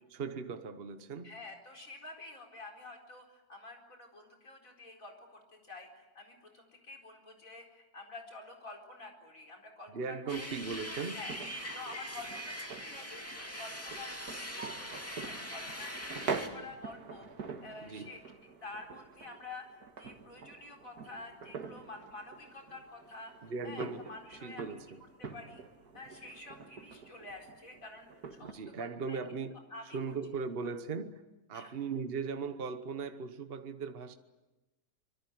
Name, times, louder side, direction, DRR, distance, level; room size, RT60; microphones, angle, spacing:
voice 1, 0.1-1.4 9.9-11.2 17.8-18.1 23.4-24.1 24.4-25.0 28.4-29.6 29.9-31.2 31.5-34.2, right 5 dB, 40° right, 1.3 m, -38 dB
voice 2, 1.2-10.6 11.1-11.4 11.7-13.3 13.6-18.2 18.6-23.3 23.6-24.7 25.2-25.6 25.9-29.2 29.7-30.1 31.5-31.7, left 3 dB, 60° left, 4.9 m, -49 dB
sound 1, 10.3-16.5, equal, 10° left, 2.6 m, -42 dB
sound 2, 11.1-28.5, right 5 dB, 80° right, 2.2 m, -45 dB
25.5 x 23.0 x 9.2 m
omnidirectional pair, 1.6 m